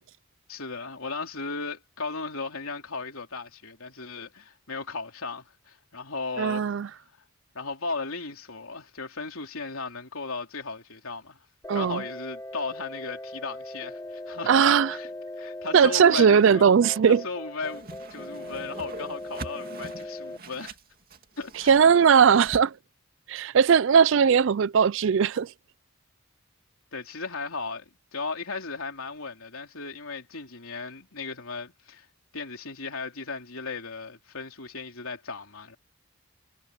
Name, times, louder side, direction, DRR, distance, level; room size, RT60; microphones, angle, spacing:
voice 1, 0.5-6.9 7.5-11.4 11.7-15.1 15.4-16.6 17.0-17.8 18.1-20.7 21.4-21.7 26.9-32.1 32.3-35.8, left 4 dB, 70° left, 3.4 m, -36 dB
voice 2, 6.4-6.9 11.7-12.0 14.5-15.0 15.7-17.2 21.7-22.7 23.3-25.5, right 7 dB, 55° right, 0.4 m, -19 dB
sound 1, 11.6-20.4, left 1 dB, 15° left, 1.2 m, -40 dB
Whoosh swoosh swish, 17.6-22.6, right 2 dB, 40° right, 2.5 m, -43 dB
head